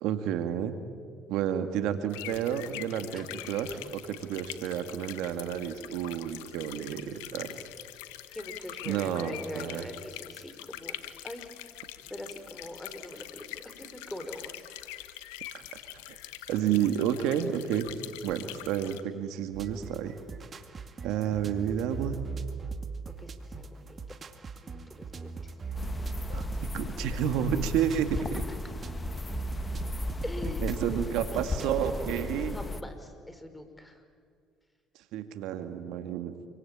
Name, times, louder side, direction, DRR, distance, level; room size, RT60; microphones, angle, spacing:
voice 1, 0.0-0.8 1.3-7.6 8.9-9.8 15.5-15.6 16.5-20.1 21.0-22.2 26.3-28.4 30.6-32.5 35.1-36.3, right 9 dB, 75° right, 8 dB, 2.0 m, -30 dB
sound 1, 2.1-19.0, left 14 dB, 90° left, 1.4 m, -44 dB
voice 2, 8.3-11.0 11.2-11.5 12.1-15.1 23.2-24.0 24.6-25.9 30.2-31.0 31.3-31.7 32.5-34.0, left 1 dB, 10° left, 8 dB, 4.8 m, -43 dB
sound 2, 19.5-32.4, right 5 dB, 40° right, 2.2 m, -40 dB
sound 3, 25.7-32.8, left 3 dB, 25° left, 1.8 m, -36 dB
28.0 x 24.0 x 8.8 m, 2.1 s
supercardioid pair, 70°, 0 cm